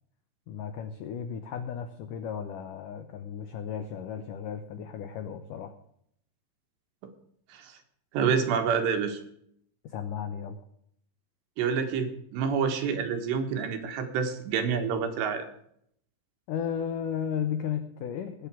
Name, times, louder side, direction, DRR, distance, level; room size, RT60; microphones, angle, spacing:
voice 1, 0.5-5.8 9.8-10.6 16.5-18.5, left 8 dB, 85° left, 9 dB, 1.8 m, -34 dB
voice 2, 8.1-9.2 11.6-15.4, right 6 dB, 75° right, 7 dB, 3.5 m, -28 dB
20.0 x 6.8 x 6.1 m, 0.69 s
omnidirectional pair, 5.1 m